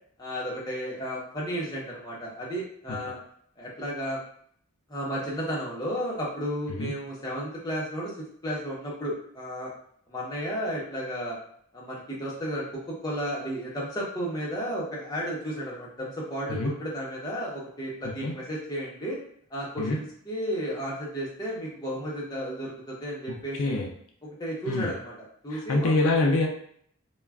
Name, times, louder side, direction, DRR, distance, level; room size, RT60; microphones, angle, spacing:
voice 1, 0.2-3.2 3.6-4.2 4.9-8.1 8.4-9.7 10.1-11.4 11.7-19.2 19.5-23.8 24.2-26.1, equal, 15° left, -5 dB, 0.6 m, -33 dB
voice 2, 25.5-26.5, left 2 dB, 70° left, 1 dB, 0.4 m, -25 dB
2.2 x 2.1 x 3.4 m, 0.63 s
head